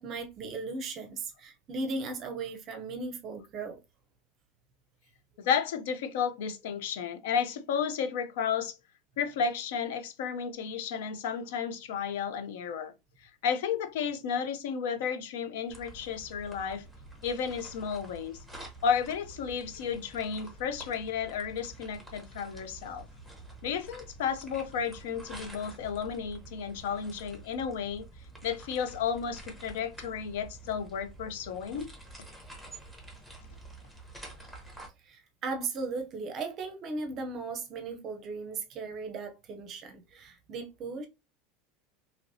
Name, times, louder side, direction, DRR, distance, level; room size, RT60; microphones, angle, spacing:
voice 1, 0.0-3.8 35.0-41.1, right 3 dB, 30° right, 0.5 m, -37 dB
voice 2, 5.4-8.8 9.2-12.9 13.4-16.8 17.2-18.4 18.8-23.1 23.6-28.1 28.4-31.9, left 7 dB, 75° left, 0.5 m, -32 dB
sound 1, 15.7-34.9, right 2 dB, 5° left, 0.8 m, -48 dB
3.1 x 2.8 x 2.6 m
supercardioid pair, 160°, 0 cm